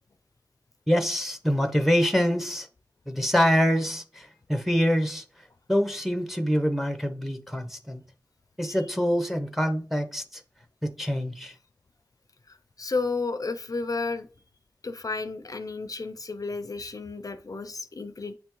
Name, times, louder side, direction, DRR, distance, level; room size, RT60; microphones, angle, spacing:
voice 1, 0.9-2.7 3.1-5.2 5.7-8.0 8.6-10.4 10.8-11.5, equal, 5° right, 0.8 m, -25 dB
voice 2, 12.5-14.3 14.8-18.3, left 3 dB, 55° left, 0.4 m, -32 dB
9.1 x 3.4 x 3.0 m
wide cardioid pair, 50°, 7 cm